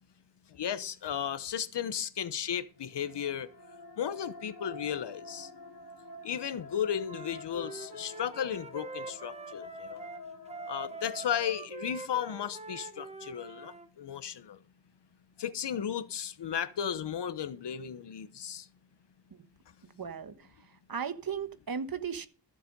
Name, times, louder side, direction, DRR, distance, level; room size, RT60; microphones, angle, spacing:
voice 1, 0.5-3.5 4.0-5.5 6.2-10.0 10.7-14.6 15.4-18.7, left 9 dB, 90° left, 1.0 m, -35 dB
sound 1, 2.8-12.0, left 4 dB, 55° left, 1.8 m, -48 dB
Wind instrument woodwind instrument, 7.0-13.9, right 3 dB, 15° right, 1.1 m, -44 dB
voice 2, 19.8-22.3, right 7 dB, 60° right, 1.3 m, -37 dB
14.5 x 7.6 x 5.3 m
wide cardioid pair, 90°, 40 cm